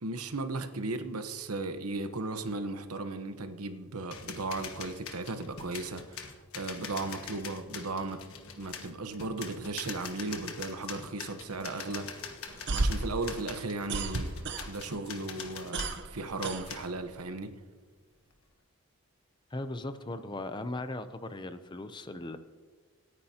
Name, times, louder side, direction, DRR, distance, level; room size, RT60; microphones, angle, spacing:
voice 1, 0.0-8.2 8.6-12.4 12.7-14.3 14.7-17.5, right 3 dB, 90° right, 1.0 m, -36 dB
sound 1, 4.1-16.0 16.4-16.9, left 6 dB, 80° left, 1.4 m, -44 dB
sound 2, 12.5-15.0 15.3-17.2, right 2 dB, 50° right, 0.8 m, -33 dB
voice 2, 19.5-22.4, left 2 dB, 20° left, 0.6 m, -38 dB
26.5 x 9.7 x 2.9 m
head